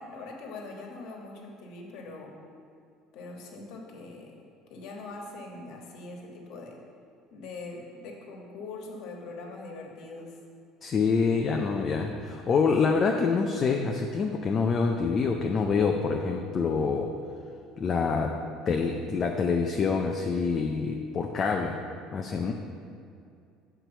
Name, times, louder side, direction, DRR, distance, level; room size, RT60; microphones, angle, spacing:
voice 1, 0.0-2.3 3.1-4.4 4.7-6.8 7.3-10.4, left 3 dB, 55° left, 1 dB, 1.3 m, -42 dB
voice 2, 10.8-17.1 17.8-18.3 18.7-21.8 22.1-22.5, left 5 dB, 25° left, 2 dB, 0.4 m, -26 dB
8.1 x 4.5 x 6.8 m, 2.4 s
cardioid pair, 165°, 0 cm